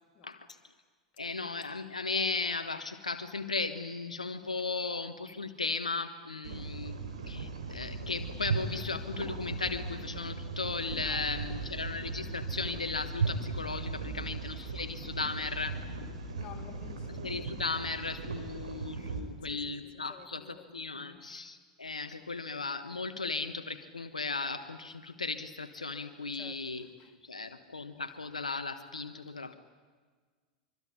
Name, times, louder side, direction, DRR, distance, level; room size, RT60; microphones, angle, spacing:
voice 1, 1.2-15.8 17.2-26.9 27.3-29.6, left 4 dB, 80° left, 1.3 m, -36 dB
voice 2, 6.4-6.8 11.0-11.7 14.1-14.4 16.3-17.2 19.4-21.3 26.3-27.5, left 8 dB, 30° left, 2.3 m, -53 dB
sound 1, 6.4-19.2, right 4 dB, 70° right, 4.3 m, -37 dB
25.0 x 24.0 x 9.8 m
figure-of-eight pair, 90°, 4 cm